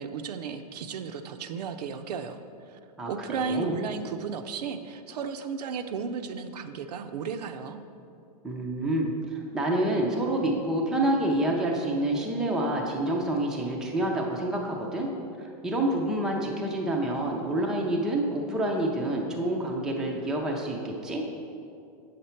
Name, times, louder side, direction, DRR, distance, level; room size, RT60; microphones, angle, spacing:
voice 1, 0.0-2.4 2.7-2.8 3.1-7.8, right 6 dB, 85° right, 8 dB, 0.7 m, -34 dB
voice 2, 3.0-3.8 8.4-15.1 15.4-21.2, right 1 dB, 5° right, -1 dB, 0.4 m, -28 dB
8.3 x 6.8 x 4.3 m, 2.5 s
supercardioid pair, 170°, 20 cm